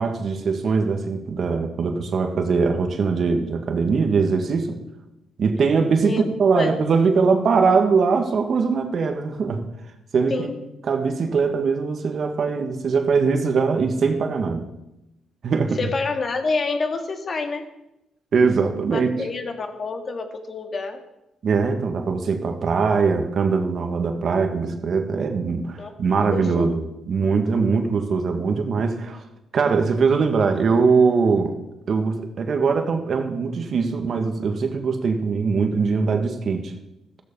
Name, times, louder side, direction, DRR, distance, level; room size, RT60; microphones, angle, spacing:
voice 1, 0.0-4.8 5.4-9.6 10.1-10.5 10.8-14.7 15.4-15.8 18.3-19.1 21.4-29.2 29.5-31.5 31.9-36.7, right 5 dB, 50° right, 6 dB, 1.8 m, -21 dB
voice 2, 15.8-17.6 18.9-21.0 25.8-26.8, left 4 dB, 40° left, 5 dB, 2.0 m, -28 dB
14.0 x 14.0 x 5.5 m, 0.92 s
cardioid pair, 120°, 0 cm